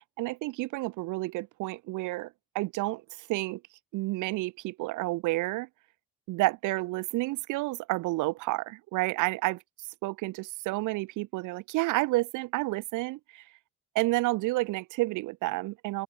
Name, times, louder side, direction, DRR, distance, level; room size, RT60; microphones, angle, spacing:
voice 1, 0.0-3.6 3.9-5.7 6.3-9.6 10.0-13.4 13.9-16.0, right 20 dB, 85° right, 0.5 m, -30 dB
open air
cardioid pair, 90°, 30 cm